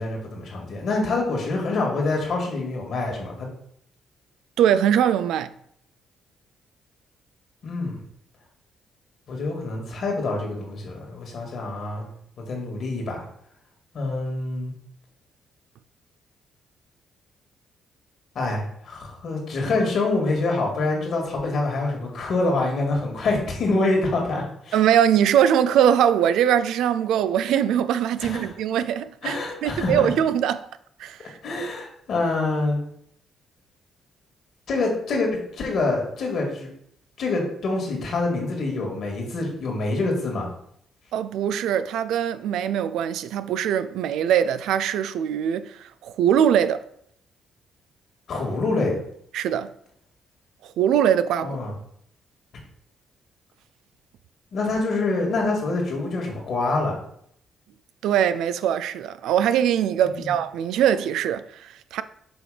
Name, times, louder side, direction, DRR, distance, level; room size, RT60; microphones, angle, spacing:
voice 1, 0.0-3.5 7.6-8.0 9.3-12.1 12.5-13.2 13.9-14.7 18.4-24.8 28.2-28.5 29.2-30.1 31.4-32.8 34.7-36.7 37.2-40.5 48.3-49.0 51.4-51.7 54.5-57.0 60.0-60.3, left 2 dB, 60° left, 2.0 m, -26 dB
voice 2, 4.6-5.5 24.7-30.7 31.0-31.4 41.1-46.8 49.3-49.7 50.6-51.6 58.0-62.0, right 9 dB, 85° right, 0.4 m, -22 dB
6.1 x 3.3 x 5.0 m
cardioid pair, 90°, 0 cm